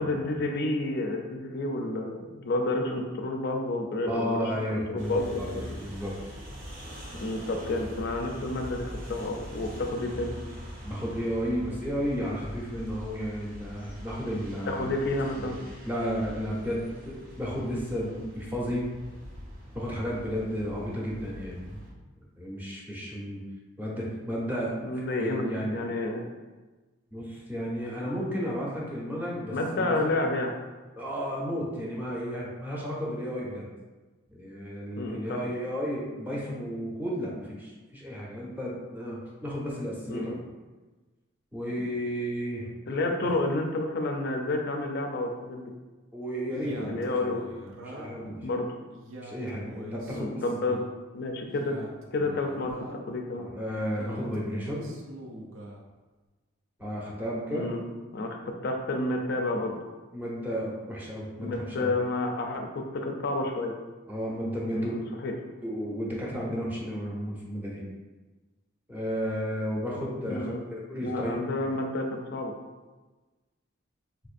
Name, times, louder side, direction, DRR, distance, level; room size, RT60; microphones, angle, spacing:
voice 1, 0.0-5.7 7.2-10.3 14.7-15.6 24.8-26.2 29.5-30.5 35.0-35.5 40.1-40.4 41.8-41.9 42.9-45.7 46.8-47.4 48.4-48.7 50.1-50.8 51.1-51.8 52.1-53.5 57.5-57.8 58.1-59.8 61.4-63.7 64.7-65.3 70.2-70.6 71.0-72.5, left 2 dB, 55° left, 3 dB, 0.4 m, -30 dB
voice 2, 4.1-5.5 5.7-6.1 9.6-9.7 10.8-14.9 15.4-15.6 15.9-18.9 19.7-21.8 22.4-23.4 23.8-25.8 27.1-30.0 31.0-33.7 34.3-40.3 41.5-42.7 43.0-43.3 46.1-47.1 47.8-48.5 49.2-50.3 53.4-54.9 56.8-57.7 60.1-61.9 64.1-64.9 65.6-67.8 68.9-71.8, equal, 10° right, -5 dB, 0.6 m, -33 dB
sound 1, 5.0-21.9, equal, 45° right, 0.8 m, -43 dB
Male speech man speaking, 46.5-48.3 48.9-50.9 51.4-53.1 53.8-55.8, right 1 dB, 80° right, 0.5 m, -43 dB
4.4 x 2.5 x 2.5 m, 1.2 s
head